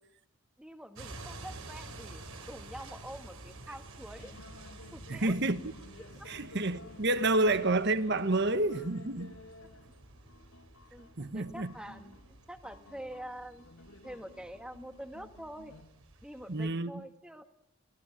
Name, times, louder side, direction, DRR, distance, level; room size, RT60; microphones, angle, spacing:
voice 1, 0.6-2.2 2.5-4.3 4.9-5.4 6.2-6.3 10.9-13.7 14.0-15.7 16.2-17.4, right 1 dB, 5° right, 1.6 m, -46 dB
sound 1, 0.9-16.7, right 2 dB, 75° right, 4.7 m, -51 dB
sound 2, 4.2-15.8, left 2 dB, 80° left, 4.0 m, -54 dB
voice 2, 5.1-5.6 6.3-9.4 11.2-11.7 16.5-17.0, right 2 dB, 50° right, 1.3 m, -29 dB
25.0 x 17.5 x 9.9 m
head